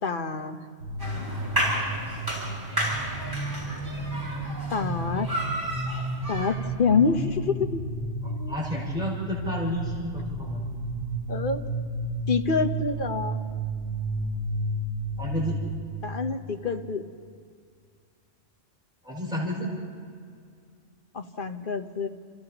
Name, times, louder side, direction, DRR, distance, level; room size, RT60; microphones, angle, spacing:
voice 1, 0.0-0.7 4.7-5.3 6.3-7.8 8.2-8.5 11.3-11.6 12.3-13.4 16.0-17.1 21.1-22.1, left 4 dB, 50° left, 6 dB, 1.2 m, -27 dB
sound 1, 0.8-16.7, right 1 dB, 90° left, 3.6 m, -32 dB
sound 2, 1.0-6.5, right 1 dB, 20° right, 7.3 m, -32 dB
voice 2, 8.2-10.6 15.2-15.6 19.0-19.7, equal, 5° right, -5 dB, 5.8 m, -31 dB
29.5 x 29.5 x 3.0 m, 2.2 s
omnidirectional pair, 1.1 m